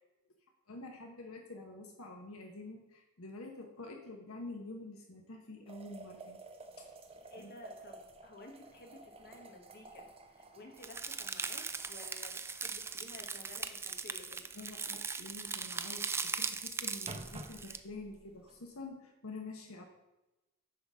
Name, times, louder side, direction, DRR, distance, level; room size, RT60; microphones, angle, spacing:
voice 1, 0.7-6.4 6.8-6.9 7.4-7.5 14.5-19.8, left 2 dB, 85° left, 3 dB, 1.0 m, -47 dB
sound 1, 5.7-16.2 16.6-18.7, right 2 dB, 30° right, 0.8 m, -53 dB
voice 2, 7.2-14.5, left 2 dB, 50° left, 2 dB, 1.4 m, -54 dB
sound 2, 10.8-17.8, right 5 dB, 10° right, 0.3 m, -39 dB
9.6 x 3.8 x 6.1 m, 1.0 s
head